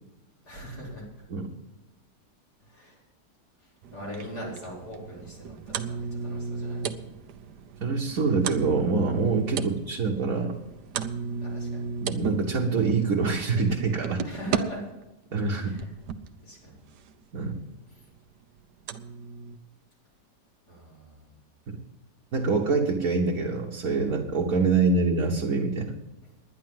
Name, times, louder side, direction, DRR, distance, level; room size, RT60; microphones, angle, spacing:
voice 1, 0.4-1.1 2.7-3.0 3.9-6.9 9.5-9.7 11.4-11.9 14.2-14.8 15.3-15.9 16.4-16.8 20.7-21.3, equal, 70° left, -5 dB, 4.9 m, -41 dB
sound 1, 3.8-14.6 15.4-16.3 17.5-17.6 18.0-18.1 18.9-19.6, right 6 dB, 75° right, 1.3 m, -35 dB
voice 2, 7.8-10.6 12.0-14.2 15.3-15.7 17.3-17.6 22.3-25.9, right 4 dB, 55° right, -1 dB, 1.5 m, -25 dB
10.5 x 10.5 x 7.7 m, 0.98 s
omnidirectional pair, 1.8 m